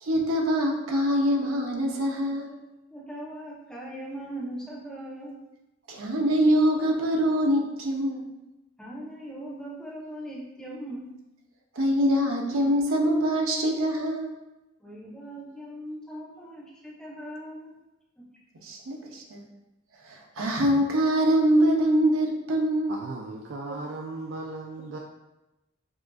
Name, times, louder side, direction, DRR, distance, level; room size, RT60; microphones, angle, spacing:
voice 1, 0.0-2.6 5.9-8.3 11.8-14.4 18.6-19.4 20.0-23.0, equal, 90° right, 0 dB, 0.8 m, -24 dB
voice 2, 2.9-5.4 8.8-11.1 14.8-17.7 18.2-18.3, right 1 dB, 5° left, -6 dB, 0.7 m, -39 dB
voice 3, 22.9-25.0, right 3 dB, 60° right, 0 dB, 0.3 m, -36 dB
6.0 x 2.5 x 2.3 m, 0.98 s
head